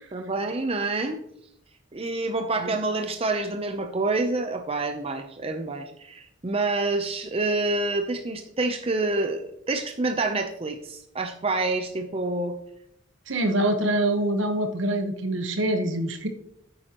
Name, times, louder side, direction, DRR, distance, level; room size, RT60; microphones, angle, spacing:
voice 1, 0.1-1.2 1.9-12.5, right 2 dB, 30° right, 6 dB, 0.6 m, -27 dB
voice 2, 13.3-16.3, right 1 dB, 70° right, 6 dB, 1.2 m, -25 dB
9.5 x 8.8 x 3.0 m, 0.74 s
head